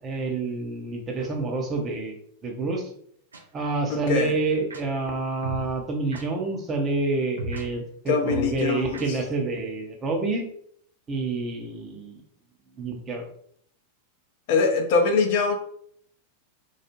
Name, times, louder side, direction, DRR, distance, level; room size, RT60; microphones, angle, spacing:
voice 1, 0.0-2.2 2.4-2.9 3.5-10.5 11.1-12.2 12.8-13.3, right 3 dB, 25° right, 2 dB, 0.6 m, -28 dB
sound 1, 3.3-3.4 4.7-4.8 5.4-5.7 6.1-6.2 7.4-7.6 8.3-8.5 8.9-9.0, right 2 dB, 75° right, 0.4 m, -33 dB
voice 2, 3.9-4.4 8.1-9.2 14.5-15.6, left 4 dB, 50° left, 4 dB, 0.4 m, -23 dB
2.3 x 2.0 x 2.9 m, 0.66 s
figure-of-eight pair, 90°, 0 cm